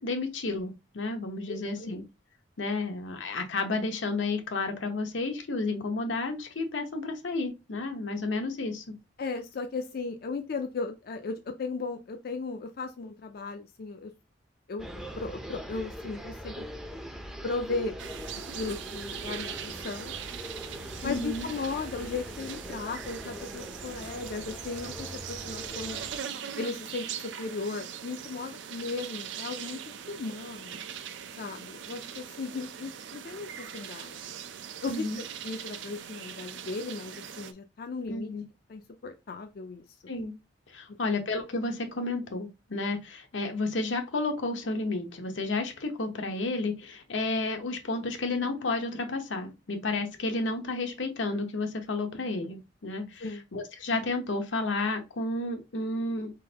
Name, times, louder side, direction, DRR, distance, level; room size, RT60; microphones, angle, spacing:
voice 1, 0.0-2.0 2.6-8.9 21.0-21.5 34.9-35.2 38.1-38.4 40.1-40.3 40.7-56.3, left 3 dB, 85° left, 0.9 m, -31 dB
voice 2, 1.5-2.0 9.2-14.1 14.7-14.9 15.2-16.6 17.4-18.0 18.5-20.1 21.0-26.0 26.6-30.8 31.4-34.3 34.8-38.3 38.7-39.8 53.2-53.4, left 4 dB, 55° left, 0.4 m, -36 dB
sound 1, 14.8-26.2, equal, 5° right, 0.5 m, -42 dB
sound 2, 18.0-37.5, right 8 dB, 75° right, 0.5 m, -41 dB
4.2 x 3.8 x 2.8 m
head